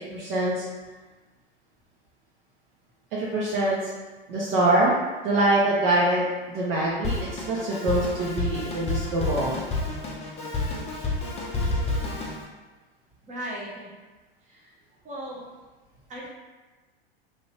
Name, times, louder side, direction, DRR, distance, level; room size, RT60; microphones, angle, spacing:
voice 1, 0.1-0.6 3.1-3.8 4.3-5.0 5.2-9.6, right 1 dB, 45° right, -5 dB, 0.7 m, -24 dB
Drum kit, 7.0-12.4, left 2 dB, 20° left, 0.6 m, -29 dB
voice 2, 13.2-13.9 14.5-14.7 15.0-15.4 16.1-16.3, right 1 dB, 25° right, -4 dB, 1.0 m, -37 dB
3.1 x 2.5 x 2.9 m, 1.2 s
hypercardioid pair, 95°, 31 cm